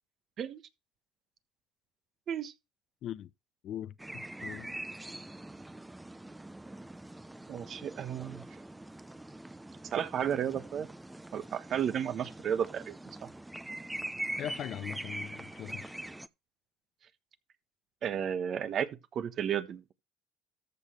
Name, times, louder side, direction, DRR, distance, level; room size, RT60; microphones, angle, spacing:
voice 1, 3.6-4.7 14.4-15.8, left 11 dB, 60° left, 0.6 m, -40 dB
sound 1, 4.0-16.3, right 1 dB, 10° right, 0.7 m, -43 dB
voice 2, 7.5-8.4 9.9-10.9 11.3-12.9 13.2-13.3 18.0-19.9, right 8 dB, 50° right, 1.3 m, -33 dB
13.5 x 6.6 x 3.2 m
supercardioid pair, 80°, 0 cm